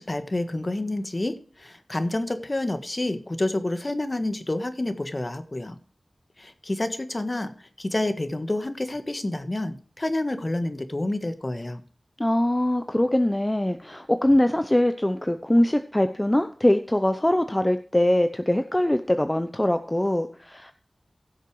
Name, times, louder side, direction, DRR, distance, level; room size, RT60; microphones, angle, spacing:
voice 1, 0.0-5.8 6.4-11.8, left 1 dB, 40° left, 10 dB, 1.4 m, -29 dB
voice 2, 12.2-20.7, left 1 dB, 20° left, 9 dB, 0.7 m, -22 dB
16.0 x 6.6 x 4.8 m, 0.43 s
wide cardioid pair, 60°, 0 cm